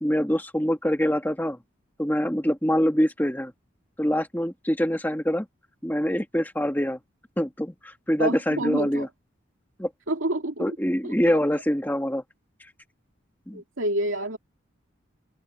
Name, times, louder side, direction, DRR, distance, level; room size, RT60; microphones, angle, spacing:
voice 1, 0.0-1.6 2.0-3.5 4.0-5.5 5.8-7.0 7.4-9.1 9.8-9.9 10.6-12.2 13.5-13.6, equal, 10° left, 1.6 m, -25 dB
voice 2, 8.2-9.1 10.1-10.8 11.0-11.3 13.5-14.4, right 1 dB, 85° right, 2.3 m, -28 dB
head